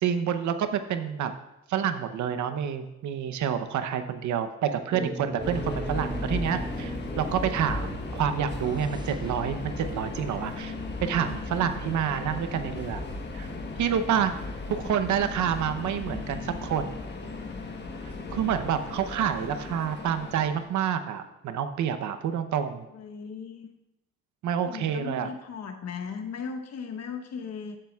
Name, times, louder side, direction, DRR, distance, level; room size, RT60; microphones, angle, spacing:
voice 1, 0.0-1.3 1.7-10.7 11.0-13.0 13.3-13.5 13.8-14.4 14.7-16.9 18.3-22.9 24.4-25.3, right 8 dB, 70° right, 10 dB, 0.8 m, -28 dB
sound 1, 4.9-18.2, right 2 dB, 15° right, 0.7 m, -42 dB
Subway metro underground, 5.4-20.7, left 3 dB, 35° left, 1.2 m, -36 dB
voice 2, 22.9-23.7 24.6-27.8, left 6 dB, 60° left, 5 dB, 1.1 m, -37 dB
14.5 x 7.7 x 2.4 m, 0.90 s
cardioid pair, 90°, 30 cm